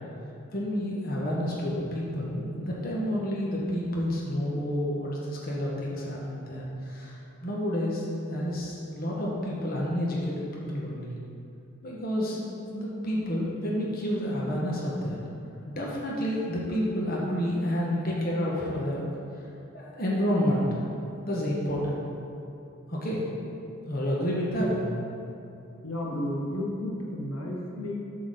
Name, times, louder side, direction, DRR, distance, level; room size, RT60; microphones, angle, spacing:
voice 1, 0.5-11.2 11.8-12.4 12.7-15.2 15.6-19.1 19.7-20.8 21.2-22.0 22.9-23.3 23.9-24.9, equal, 45° left, -4 dB, 1.3 m, -29 dB
voice 2, 25.8-28.0, left 1 dB, 85° left, -2 dB, 1.2 m, -32 dB
7.9 x 4.0 x 6.7 m, 2.7 s
head